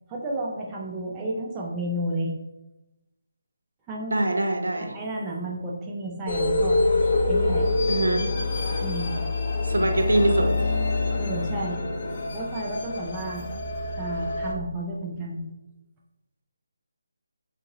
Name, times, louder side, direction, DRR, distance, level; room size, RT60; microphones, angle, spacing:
voice 1, 0.1-2.3 3.9-4.1 4.8-6.8 7.3-7.7 8.8-9.2 11.2-11.8 12.3-13.5 13.9-15.4, right 1 dB, 10° right, -4 dB, 0.4 m, -32 dB
voice 2, 4.1-4.9 7.9-8.2 8.7-8.8 9.6-10.5, right 2 dB, 85° right, 3 dB, 0.7 m, -23 dB
sound 1, 6.3-14.5, left 2 dB, 40° left, 0.5 m, -26 dB
3.7 x 2.5 x 2.9 m, 0.99 s
figure-of-eight pair, 165°, 0 cm